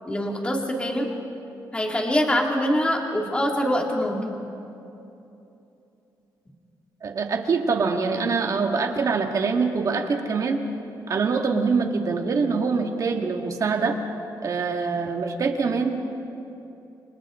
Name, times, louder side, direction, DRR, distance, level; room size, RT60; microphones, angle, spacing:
voice 1, 0.1-1.1 1.7-4.4, equal, 15° left, 0 dB, 2.4 m, -24 dB
voice 2, 7.0-10.6 11.1-14.0 14.4-16.1, right 4 dB, 50° right, 3 dB, 2.0 m, -24 dB
29.0 x 25.5 x 3.8 m, 2.9 s
cardioid pair, 130°, 7 cm